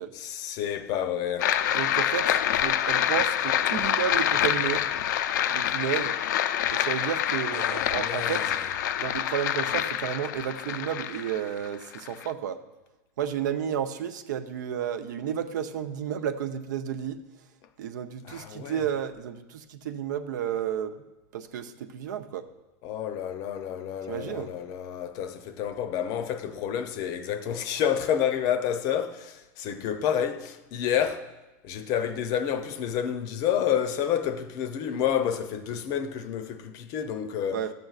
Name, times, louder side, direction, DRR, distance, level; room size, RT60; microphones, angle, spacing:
voice 1, 0.1-1.5 7.5-8.6 18.2-18.8 22.8-31.3 31.6-37.6, left 9 dB, 40° left, 0.6 m, -29 dB
sound 1, 1.4-12.3, left 10 dB, 85° left, 0.4 m, -26 dB
voice 2, 1.7-4.8 5.5-6.2 6.7-8.5 9.0-12.6 13.2-17.2 17.8-20.9 21.3-22.5 24.1-24.5 37.5-37.7, right 9 dB, 85° right, 0.6 m, -32 dB
13.0 x 7.7 x 2.4 m
supercardioid pair, 155°, 10 cm